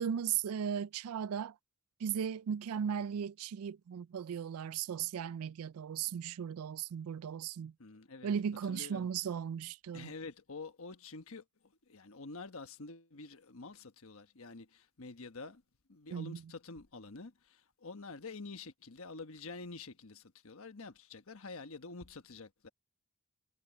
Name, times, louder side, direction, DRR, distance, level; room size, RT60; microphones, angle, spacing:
voice 1, 0.0-1.5 2.0-7.7 8.2-10.1 16.1-16.4, right 8 dB, 80° right, 0.4 m, -36 dB
voice 2, 7.8-8.3 8.7-9.1 9.9-15.6 15.9-22.7, left 3 dB, 70° left, 1.3 m, -48 dB
head